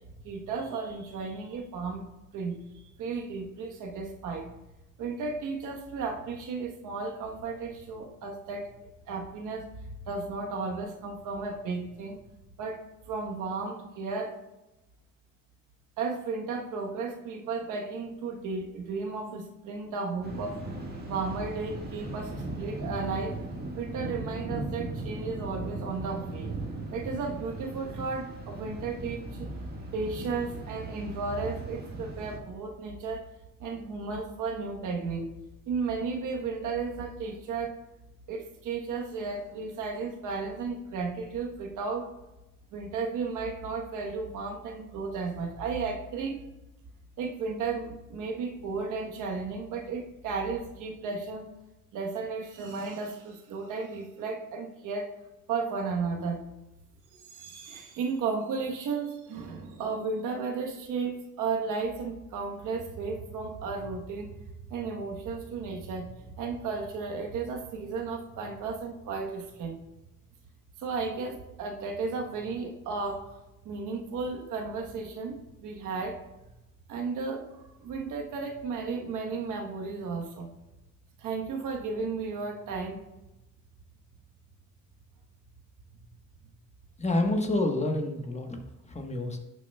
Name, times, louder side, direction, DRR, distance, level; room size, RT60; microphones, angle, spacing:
voice 1, 0.2-2.0 2.3-2.6 3.0-4.5 5.0-8.7 9.1-9.7 10.1-12.2 12.6-12.8 13.1-14.3 16.0-20.6 21.1-23.4 23.8-26.5 26.9-29.5 29.9-33.2 33.6-35.3 35.7-37.8 38.3-42.1 42.7-46.4 47.2-51.5 51.9-55.1 55.5-56.4 57.3-64.4 64.7-69.8 70.8-73.3 73.6-76.2 76.9-80.5 81.2-83.0, right 4 dB, 85° right, 2 dB, 1.2 m, -34 dB
Thunder, 20.2-32.4, right 2 dB, 35° right, 1.8 m, -38 dB
voice 2, 87.0-88.6 88.9-89.4, left 2 dB, 20° left, 4 dB, 1.2 m, -28 dB
11.0 x 6.9 x 2.3 m, 0.97 s
cardioid pair, 90°, 30 cm